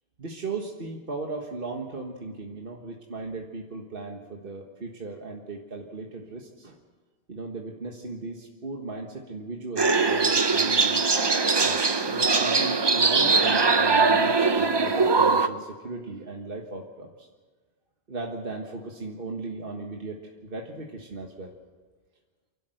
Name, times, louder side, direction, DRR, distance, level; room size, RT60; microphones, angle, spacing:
voice 1, 0.2-6.8 7.3-11.0 11.6-17.3 18.1-21.5, right 3 dB, 60° right, 1 dB, 1.7 m, -37 dB
sound 1, 9.8-15.5, right 4 dB, 30° right, 0.7 m, -21 dB
28.0 x 12.5 x 7.9 m, 1.4 s
omnidirectional pair, 1.0 m